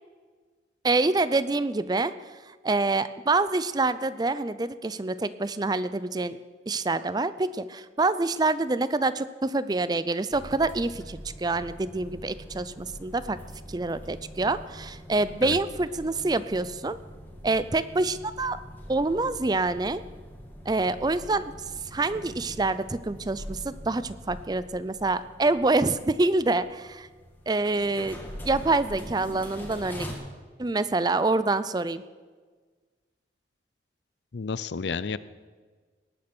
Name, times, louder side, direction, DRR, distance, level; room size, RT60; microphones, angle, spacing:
voice 1, 0.8-2.1 2.6-6.4 6.7-13.4 13.7-17.0 17.4-18.6 18.9-20.0 20.7-21.5 21.9-27.1 27.5-28.2 28.4-30.1 30.6-32.0, right 3 dB, 20° right, 15 dB, 0.4 m, -26 dB
sound 1, 10.3-30.1, equal, 10° left, 2.1 m, -43 dB
voice 2, 34.3-35.2, left 5 dB, 70° left, 16 dB, 0.5 m, -31 dB
19.0 x 8.7 x 6.0 m, 1.4 s
head